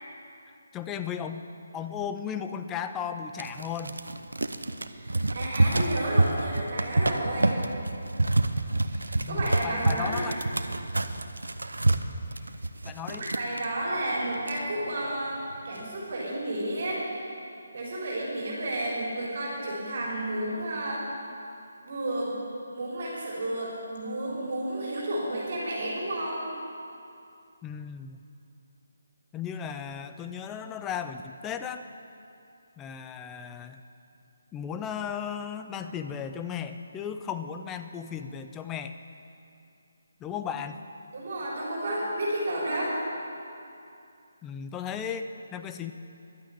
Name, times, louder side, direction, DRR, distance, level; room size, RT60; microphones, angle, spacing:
voice 1, 0.7-1.5 1.7-4.0 9.2-10.4 12.8-13.2 27.6-28.2 29.3-31.9 32.8-33.8 34.5-38.9 40.2-40.8 44.4-45.9, left 7 dB, 15° left, 8 dB, 0.5 m, -35 dB
sound 1, 3.4-13.7 14.1-14.2 14.4-15.1 15.5-15.8, right 2 dB, 85° right, 0.7 m, -28 dB
voice 2, 4.9-7.6 8.8-10.4 12.3-12.4 13.1-17.3 17.7-21.1 21.8-22.4 22.7-26.5 41.1-43.0, right 1 dB, 55° right, -5 dB, 3.8 m, -32 dB
11.5 x 9.4 x 8.4 m, 2.6 s
figure-of-eight pair, 155°, 0 cm